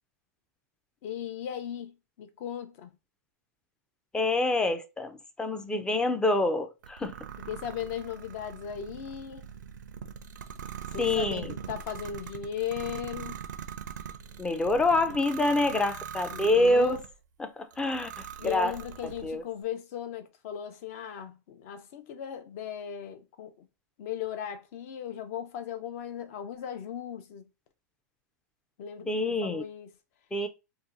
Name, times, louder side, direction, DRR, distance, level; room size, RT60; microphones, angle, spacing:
voice 1, 1.0-2.9 7.5-9.4 10.9-13.4 16.3-17.0 18.4-23.7 24.0-27.4 28.8-29.9, left 9 dB, 55° left, 0.7 m, -37 dB
voice 2, 4.1-7.1 11.0-11.5 14.4-17.0 17.4-18.7 19.2-19.4 29.1-29.6 30.3-30.5, left 2 dB, 10° left, 0.4 m, -26 dB
sound 1, 6.8-17.1 17.7-19.3, right 7 dB, 90° right, 0.5 m, -42 dB
2.7 x 2.3 x 3.8 m
hypercardioid pair, 135°, 10 cm